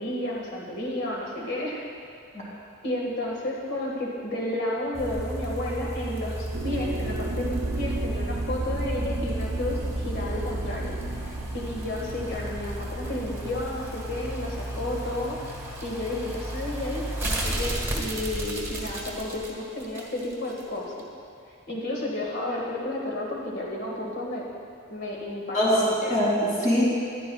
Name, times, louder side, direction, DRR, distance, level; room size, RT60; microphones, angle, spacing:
voice 1, 0.0-1.9 2.8-15.4 15.8-20.9 21.7-24.4 24.9-26.2, left 1 dB, 50° left, -2 dB, 1.8 m, -32 dB
sound 1, 4.9-20.6 21.0-21.1, right 1 dB, 10° right, 1.3 m, -33 dB
sound 2, 6.5-15.2, right 2 dB, 90° right, 0.7 m, -35 dB
voice 2, 25.5-26.9, equal, 35° left, -5 dB, 2.5 m, -23 dB
14.5 x 11.0 x 2.4 m, 2.5 s
head